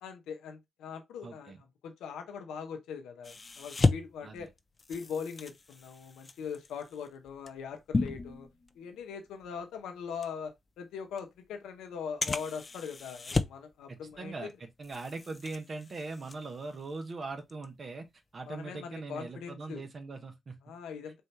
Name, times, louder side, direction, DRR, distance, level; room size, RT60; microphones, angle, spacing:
voice 1, 0.0-1.5 1.8-4.5 4.9-8.5 8.8-14.5 18.4-19.8 20.6-21.2, left 6 dB, 85° left, 0.8 m, -41 dB
voice 2, 1.2-1.6 4.2-4.4 13.9-14.5 14.8-18.0 18.3-20.6, right 3 dB, 50° right, 1.2 m, -41 dB
sound 1, 3.2-9.0 9.4-9.6 10.2-10.3 11.2-11.3 12.2-13.7 14.0-14.5 14.8-17.0 17.4-17.6, left 3 dB, 40° left, 0.5 m, -34 dB
4.3 x 2.8 x 3.3 m
supercardioid pair, 45°, 0 cm